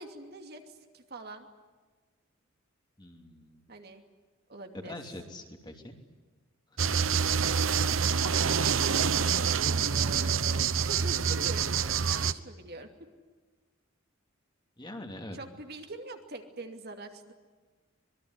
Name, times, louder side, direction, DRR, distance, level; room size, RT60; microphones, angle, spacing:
voice 1, 0.0-1.5 3.7-4.0 4.5-4.9 9.9-12.9 15.3-17.3, right 2 dB, 50° right, 4 dB, 2.6 m, -44 dB
voice 2, 3.0-3.6 4.7-6.0 14.8-15.4, left 1 dB, 20° left, 4 dB, 3.0 m, -43 dB
sound 1, 6.8-12.3, right 6 dB, 70° right, 1.0 m, -26 dB
25.5 x 21.5 x 9.8 m, 1.4 s
head